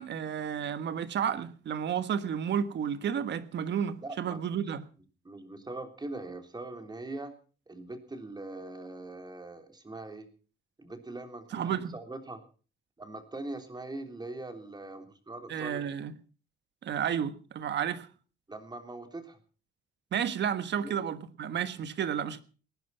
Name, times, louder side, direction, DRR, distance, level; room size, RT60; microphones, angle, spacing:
voice 1, 0.0-4.8 11.5-11.9 15.5-16.1 16.8-18.1 20.1-22.4, right 8 dB, 65° right, 1.5 m, -32 dB
voice 2, 4.0-4.7 5.2-7.3 7.7-10.3 10.8-12.4 13.0-15.9 18.5-19.4 20.8-21.0, right 2 dB, 20° right, 3.4 m, -42 dB
18.5 x 11.0 x 5.6 m
cardioid pair, 90°, 20 cm